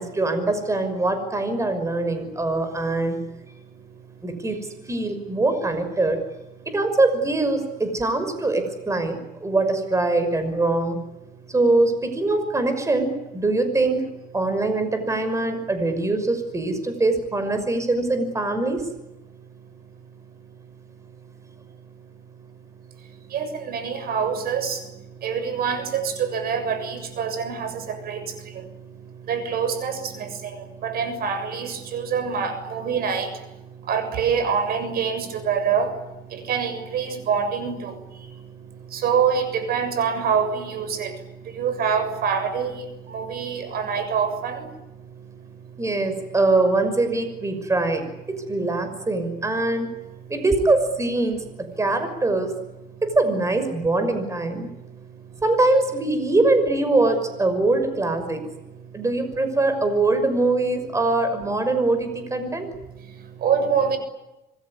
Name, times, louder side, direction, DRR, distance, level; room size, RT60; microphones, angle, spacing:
voice 1, 0.0-3.2 4.2-6.2 6.7-11.0 11.5-14.1 14.3-18.8 45.8-48.0 48.3-49.9 50.3-52.5 53.0-54.7 55.4-58.4 58.9-62.7, right 2 dB, 15° right, 8 dB, 5.9 m, -23 dB
voice 2, 23.3-25.0 25.2-28.9 29.2-33.5 33.8-38.6 38.9-44.7 63.0-64.0, right 6 dB, 65° right, 10 dB, 7.1 m, -26 dB
26.0 x 22.0 x 9.8 m, 0.97 s
cardioid pair, 110°, 17 cm